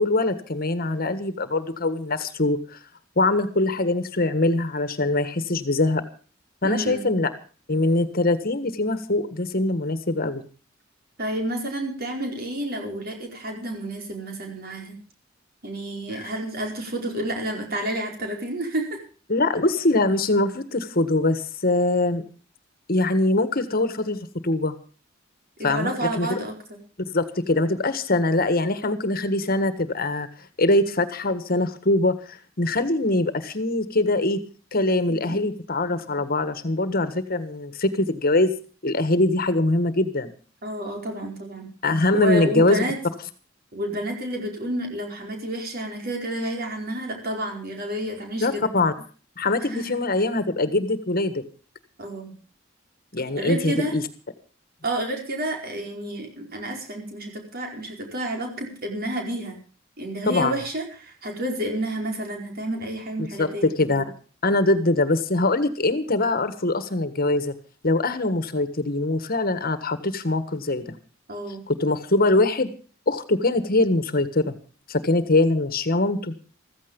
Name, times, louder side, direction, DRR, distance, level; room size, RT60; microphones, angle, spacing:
voice 1, 0.0-2.8 3.2-6.0 6.6-7.3 7.7-10.4 16.1-16.3 19.3-22.2 22.9-24.7 25.6-26.4 27.1-30.3 30.6-34.4 34.7-38.5 38.8-40.3 41.8-42.8 48.4-48.9 49.4-51.4 53.1-54.0 60.2-60.6 63.2-64.0 64.4-67.5 67.8-70.8 71.7-72.7 73.1-74.5 74.9-76.3, left 2 dB, 50° left, 11 dB, 1.6 m, -23 dB
voice 2, 6.6-7.1 11.2-14.9 15.6-19.0 25.6-26.5 35.1-35.5 40.6-41.7 42.1-43.0 43.7-48.6 49.6-50.0 52.0-52.3 53.4-53.9 54.8-59.6 60.0-63.7 71.3-71.6, right 1 dB, 50° right, 2 dB, 4.7 m, -30 dB
15.0 x 15.0 x 5.4 m, 0.39 s
head